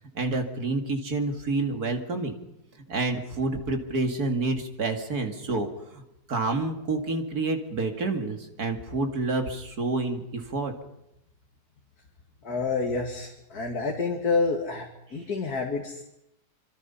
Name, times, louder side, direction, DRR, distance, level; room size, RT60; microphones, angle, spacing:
voice 1, 0.1-2.3 2.9-5.7 5.9-6.0 6.3-10.7, right 3 dB, 65° right, 5 dB, 2.8 m, -28 dB
voice 2, 12.4-16.0, left 4 dB, 65° left, 1 dB, 2.7 m, -28 dB
26.0 x 25.5 x 5.7 m, 0.85 s
omnidirectional pair, 1.8 m